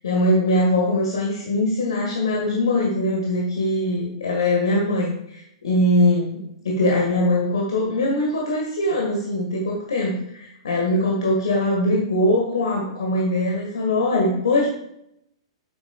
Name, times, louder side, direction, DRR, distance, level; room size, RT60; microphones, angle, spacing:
voice 1, 0.0-14.7, left 1 dB, 65° left, -2 dB, 1.6 m, -22 dB
8.6 x 8.0 x 2.4 m, 0.77 s
figure-of-eight pair, 110°, 3 cm